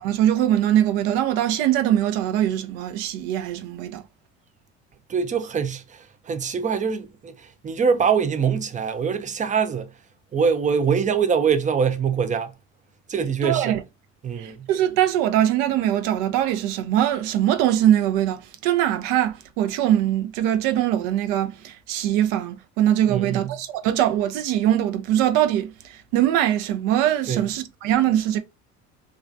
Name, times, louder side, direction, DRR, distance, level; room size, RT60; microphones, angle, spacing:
voice 1, 0.0-4.0 13.4-13.8 14.4-28.4, right 11 dB, 70° right, 0.6 m, -22 dB
voice 2, 5.1-9.9 10.3-12.5 13.1-13.7 14.2-14.7 23.1-23.5 27.3-27.4, right 6 dB, 25° right, 0.4 m, -23 dB
2.3 x 2.2 x 2.6 m
hypercardioid pair, 75°, 33 cm